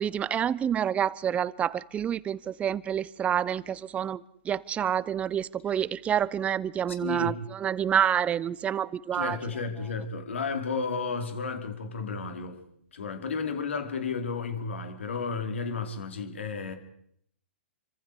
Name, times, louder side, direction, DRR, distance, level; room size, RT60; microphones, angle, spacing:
voice 1, 0.0-9.4, right 9 dB, 20° right, 0.9 m, -28 dB
voice 2, 7.0-7.4 9.1-12.6 12.9-16.8, left 5 dB, 75° left, 4.4 m, -32 dB
29.0 x 25.5 x 4.9 m
hypercardioid pair, 120°, 7 cm